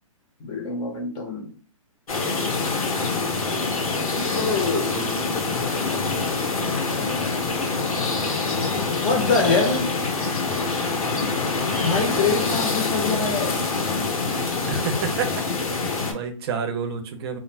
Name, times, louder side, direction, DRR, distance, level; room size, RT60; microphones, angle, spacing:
voice 1, 0.4-1.5 4.2-5.0 9.0-10.0 11.8-13.6, left 4 dB, 25° left, 0.6 m, -24 dB
sound 1, 2.1-16.1, left 4 dB, 85° left, 0.8 m, -25 dB
voice 2, 4.2-5.2 14.6-15.4 15.8-17.4, right 6 dB, 45° right, 0.6 m, -30 dB
2.4 x 2.0 x 3.1 m
hypercardioid pair, 140°, 18 cm